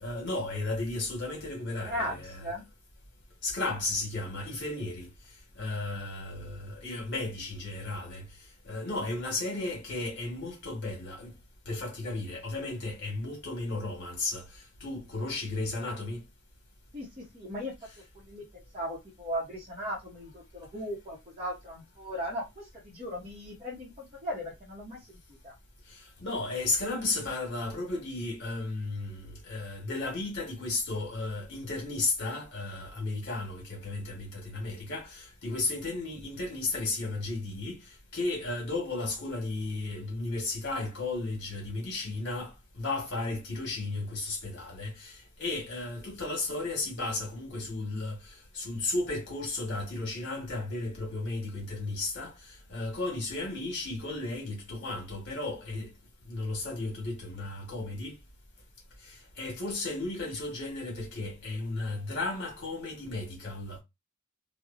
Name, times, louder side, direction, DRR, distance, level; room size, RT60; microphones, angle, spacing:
voice 1, 0.0-2.4 3.4-5.1 5.5-8.3 8.6-11.3 11.6-16.2 25.9-37.9 38.1-55.9 56.2-58.2 59.0-63.8, left 2 dB, 55° left, 1.2 m, -34 dB
voice 2, 1.9-2.7 16.9-17.7 18.1-25.2 25.4-25.5, equal, 25° right, 0.7 m, -37 dB
2.7 x 2.0 x 2.5 m
head